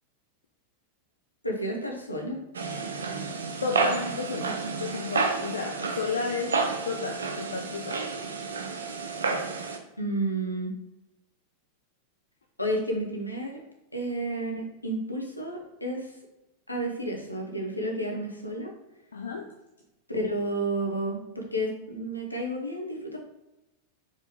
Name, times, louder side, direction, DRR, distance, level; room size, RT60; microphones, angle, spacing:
voice 1, 1.4-2.4 10.0-10.7 12.6-13.6 13.9-16.1 16.7-18.7 20.1-23.2, right 1 dB, 85° left, 1 dB, 0.9 m, -31 dB
sound 1, 2.5-9.8, right 4 dB, 70° right, 0.5 m, -30 dB
voice 2, 3.6-6.6 6.9-8.0 19.1-19.5, left 5 dB, 70° left, 3 dB, 0.4 m, -32 dB
4.5 x 3.1 x 3.5 m, 0.96 s
figure-of-eight pair, 90°, 0 cm